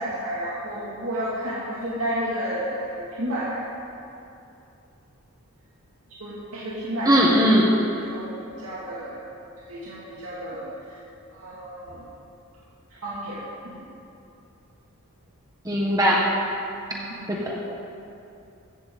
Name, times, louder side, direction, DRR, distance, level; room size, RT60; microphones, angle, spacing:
voice 1, 0.0-3.6 6.2-7.3 8.0-9.2 9.7-11.0 11.3-12.0 12.9-13.9 16.9-17.4, equal, 70° right, -9 dB, 2.7 m, -32 dB
voice 2, 7.1-7.7 15.6-16.2 17.3-17.5, equal, 15° right, -3 dB, 1.4 m, -19 dB
15.5 x 15.0 x 4.1 m, 2.7 s
head